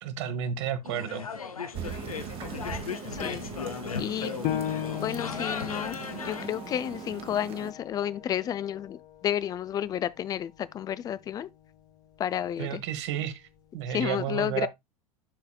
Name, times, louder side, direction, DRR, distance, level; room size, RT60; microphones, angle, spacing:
voice 1, 0.0-1.3 12.6-13.4 13.7-14.7, right 9 dB, 50° right, 1.3 m, -31 dB
sound 1, 0.8-6.5, left 6 dB, 75° left, 0.8 m, -36 dB
sound 2, 1.7-7.7, right 7 dB, 30° right, 1.2 m, -40 dB
voice 2, 3.1-3.4 4.0-4.4 5.0-6.0 6.2-11.5 12.2-12.8 13.9-14.7, left 10 dB, 20° left, 0.4 m, -31 dB
Piano, 4.4-9.6 10.1-10.2 10.8-11.3, left 11 dB, 35° left, 0.8 m, -37 dB
11.5 x 4.1 x 2.3 m
figure-of-eight pair, 85°, 18 cm